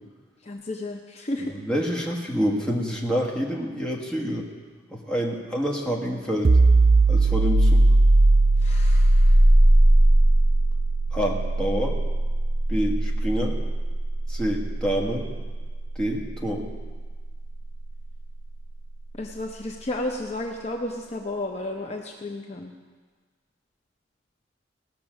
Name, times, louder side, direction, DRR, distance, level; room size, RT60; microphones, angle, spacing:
voice 1, 0.4-1.5 8.6-9.4 19.1-22.7, left 1 dB, 35° left, 2 dB, 0.7 m, -32 dB
voice 2, 1.6-4.5 4.9-6.6 7.1-7.8 11.1-11.9 12.7-13.6 14.3-15.2 15.9-16.6, equal, 5° left, -2 dB, 1.4 m, -27 dB
sound 1, 6.4-17.9, right 2 dB, 35° right, 0.4 m, -19 dB
17.5 x 6.0 x 6.2 m, 1.5 s
head